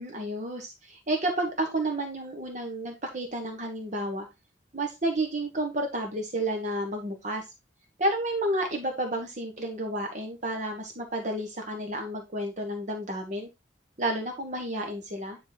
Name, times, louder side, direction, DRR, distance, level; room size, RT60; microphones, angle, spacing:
voice 1, 0.0-4.3 4.7-7.4 8.0-13.5 14.0-15.4, right 1 dB, 40° right, 3 dB, 1.4 m, -31 dB
10.5 x 3.9 x 4.0 m, 0.24 s
head